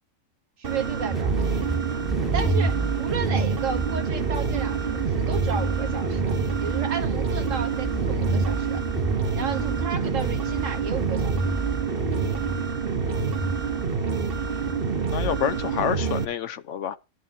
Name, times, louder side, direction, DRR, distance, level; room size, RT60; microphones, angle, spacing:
sound 1, 0.6-16.3, right 5 dB, 50° right, 1.3 m, -27 dB
voice 1, 0.6-1.3 2.3-6.3 6.6-8.8 9.3-11.4, right 6 dB, 80° right, 1.8 m, -33 dB
sound 2, 1.1-15.3, right 3 dB, ahead, 1.7 m, -30 dB
voice 2, 15.1-17.0, left 9 dB, 75° left, 1.1 m, -28 dB
14.0 x 11.0 x 2.9 m
omnidirectional pair, 1.3 m